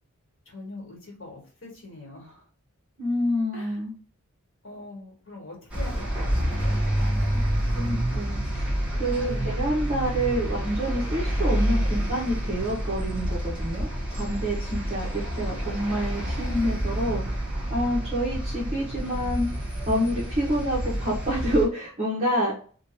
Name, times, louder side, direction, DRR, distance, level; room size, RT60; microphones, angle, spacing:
voice 1, 0.4-2.5 3.5-3.8 4.6-6.8 7.4-8.0 9.1-9.7 18.6-18.7, left 2 dB, 60° left, -1 dB, 1.4 m, -43 dB
voice 2, 3.0-3.9 7.7-19.5 19.9-22.5, equal, 30° right, -6 dB, 1.0 m, -28 dB
sound 1, 5.7-21.6, equal, 5° right, 1.1 m, -28 dB
2.9 x 2.4 x 4.2 m, 0.42 s
head